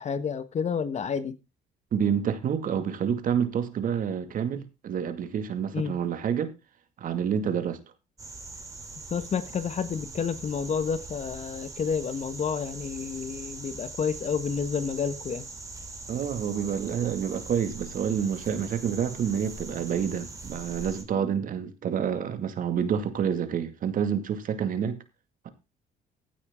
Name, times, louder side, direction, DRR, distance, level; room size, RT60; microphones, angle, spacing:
voice 1, 0.0-1.3 5.7-6.0 9.1-15.4, left 6 dB, 40° left, 1.5 m, -30 dB
voice 2, 1.9-6.5 7.0-7.8 16.1-25.0 25.4-25.5, right 8 dB, 55° right, 2.3 m, -28 dB
sound 1, 8.2-21.0, right 3 dB, 20° right, 3.4 m, -42 dB
16.0 x 8.5 x 3.8 m
cardioid pair, 110°, 17 cm